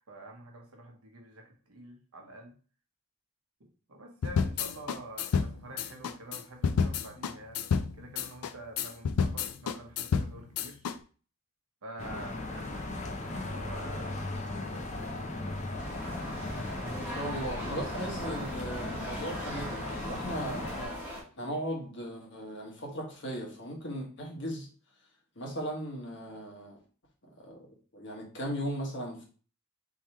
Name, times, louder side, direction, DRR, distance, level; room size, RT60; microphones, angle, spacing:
voice 1, 0.1-2.6 3.6-10.8 11.8-15.5, right 1 dB, 80° right, 2 dB, 1.1 m, -47 dB
sound 1, 4.2-11.0, left 6 dB, 85° left, 0.4 m, -30 dB
sound 2, 12.0-20.9, left 2 dB, 30° left, 0.6 m, -37 dB
sound 3, 15.8-21.2, right 1 dB, 10° right, 1.3 m, -40 dB
voice 2, 17.0-24.7 25.3-26.8 27.2-27.7 27.9-29.2, equal, 55° left, 0 dB, 1.3 m, -37 dB
3.8 x 3.0 x 4.4 m, 0.39 s
head